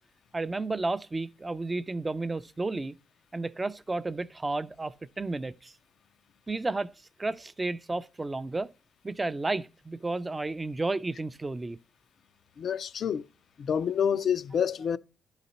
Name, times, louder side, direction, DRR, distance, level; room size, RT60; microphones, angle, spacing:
voice 1, 0.3-2.9 3.3-5.7 6.5-6.9 7.2-8.7 9.0-11.8, right 2 dB, 20° right, 0.4 m, -32 dB
voice 2, 12.6-13.2 13.6-15.0, left 8 dB, 60° left, 0.4 m, -28 dB
11.0 x 4.0 x 4.2 m
cardioid pair, 90°, 0 cm